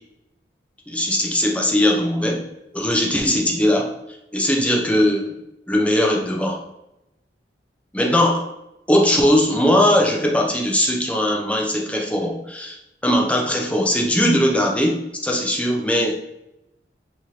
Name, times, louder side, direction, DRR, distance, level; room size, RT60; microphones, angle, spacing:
voice 1, 0.9-2.4 2.7-3.9 4.3-5.2 5.7-6.6 7.9-8.5 8.9-12.8 13.0-16.2, left 1 dB, 10° left, -1 dB, 0.6 m, -19 dB
3.6 x 3.1 x 2.8 m, 0.89 s
head